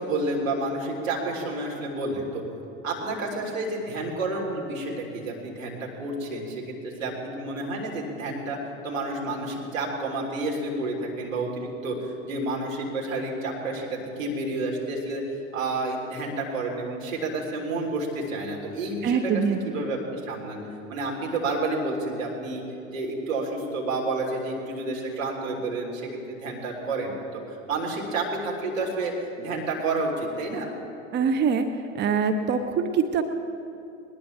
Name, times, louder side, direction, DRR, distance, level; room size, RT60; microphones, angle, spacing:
voice 1, 0.0-2.4 2.8-8.6 8.8-15.2 15.5-20.6 20.9-30.7, right 2 dB, 75° right, -2 dB, 3.7 m, -30 dB
voice 2, 19.0-19.6 31.1-31.7 31.9-33.2, right 6 dB, 25° right, 7 dB, 0.9 m, -23 dB
21.0 x 20.0 x 3.4 m, 2.7 s
figure-of-eight pair, 80°, 39 cm